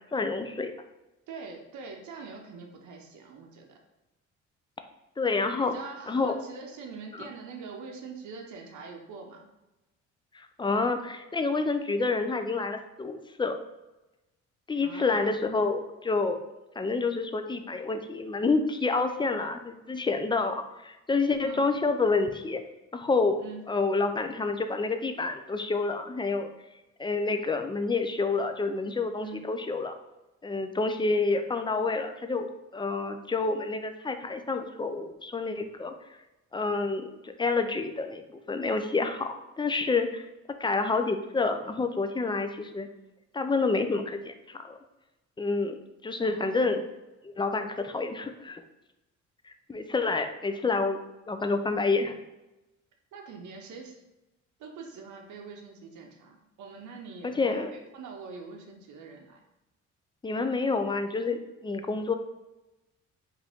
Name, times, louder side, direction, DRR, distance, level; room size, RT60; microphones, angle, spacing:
voice 1, 0.1-0.7 5.2-5.7 6.1-6.3 7.2-7.3 10.3-13.6 14.7-16.4 16.8-22.6 22.9-26.5 27.0-30.0 30.4-35.9 36.5-38.2 38.5-42.9 43.3-44.7 45.4-45.8 46.0-46.8 47.2-48.6 49.7-51.0 51.3-52.2 57.2-57.7 60.2-62.2, left 3 dB, 15° left, 7 dB, 0.4 m, -28 dB
voice 2, 1.3-3.8 5.5-9.5 14.8-15.3 21.4-21.7 23.4-23.6 29.2-29.4 46.2-46.8 53.1-54.0 54.6-59.4, right 4 dB, 75° right, 2 dB, 0.8 m, -44 dB
4.7 x 2.7 x 3.5 m, 1.0 s
cardioid pair, 90°, 30 cm